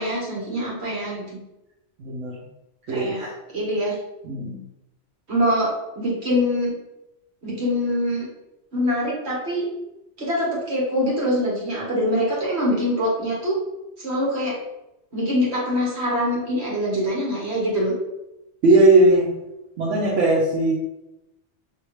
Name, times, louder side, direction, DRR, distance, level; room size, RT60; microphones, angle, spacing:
voice 1, 0.0-1.4 2.9-4.0 5.3-6.7 7.4-8.3 8.7-9.7 10.2-13.6 14.0-14.5 15.1-17.9, equal, 60° right, -5 dB, 1.6 m, -24 dB
voice 2, 2.0-2.4 2.9-3.1 4.2-4.6 18.6-19.3 19.8-20.7, right 2 dB, 85° right, -5 dB, 1.1 m, -18 dB
5.6 x 2.8 x 3.1 m, 0.91 s
omnidirectional pair, 1.2 m